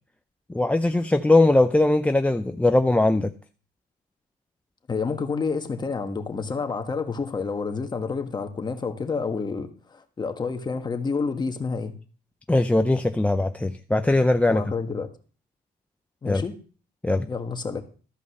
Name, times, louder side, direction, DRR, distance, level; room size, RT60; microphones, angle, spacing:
voice 1, 0.5-3.3 12.5-14.6 16.3-16.4 17.0-17.3, left 2 dB, 10° left, 0.5 m, -20 dB
voice 2, 4.9-11.9 14.5-15.1 16.2-16.6 17.2-17.8, left 4 dB, 25° left, 1.4 m, -29 dB
13.0 x 5.2 x 6.4 m
cardioid pair, 110°, 17 cm